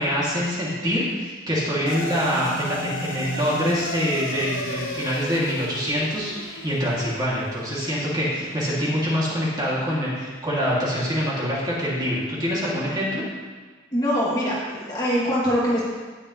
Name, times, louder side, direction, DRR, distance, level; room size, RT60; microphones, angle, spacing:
voice 1, 0.0-13.2, equal, 20° right, -7 dB, 2.7 m, -25 dB
sound 1, 1.9-10.4, left 1 dB, 80° left, 1.3 m, -36 dB
voice 2, 13.9-15.8, equal, 20° left, -7 dB, 2.7 m, -23 dB
18.0 x 7.1 x 3.3 m, 1.4 s
head